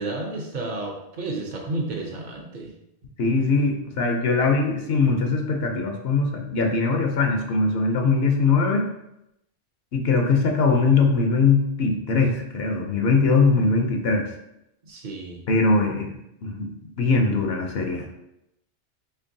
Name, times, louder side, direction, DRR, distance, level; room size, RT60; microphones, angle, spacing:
voice 1, 0.0-2.7 14.8-15.4, right 2 dB, 50° right, 1 dB, 0.7 m, -31 dB
voice 2, 3.2-8.9 9.9-14.3 15.5-16.1 16.4-16.7 17.0-18.0, left 4 dB, 65° left, 3 dB, 0.8 m, -21 dB
4.4 x 3.0 x 2.6 m, 0.85 s
omnidirectional pair, 1.1 m